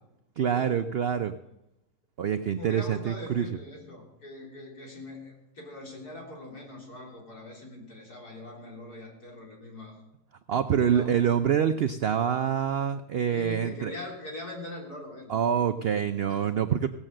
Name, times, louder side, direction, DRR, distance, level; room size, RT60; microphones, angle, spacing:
voice 1, 0.4-1.3 2.2-3.5 10.5-13.9 15.3-16.9, right 8 dB, 80° right, 9 dB, 0.5 m, -26 dB
voice 2, 2.5-10.0 10.5-11.2 13.3-15.3 15.8-16.5, left 2 dB, 70° left, -2 dB, 4.2 m, -42 dB
17.0 x 7.3 x 7.7 m, 0.90 s
omnidirectional pair, 1.7 m